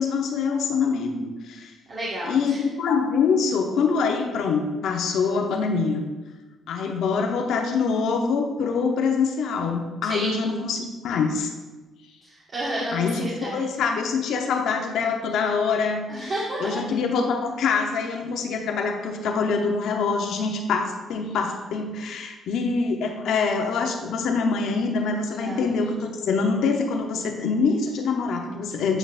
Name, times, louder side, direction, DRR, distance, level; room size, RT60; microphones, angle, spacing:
voice 1, 0.0-1.7 2.3-6.0 6.7-11.5 12.9-16.3 16.6-29.0, left 5 dB, 80° left, 3 dB, 0.9 m, -25 dB
voice 2, 1.9-2.6 10.0-10.4 12.2-13.6 16.1-16.8 25.3-25.7, right 1 dB, 50° right, -7 dB, 1.7 m, -31 dB
8.6 x 5.4 x 2.6 m, 1.2 s
cardioid pair, 90°, 0 cm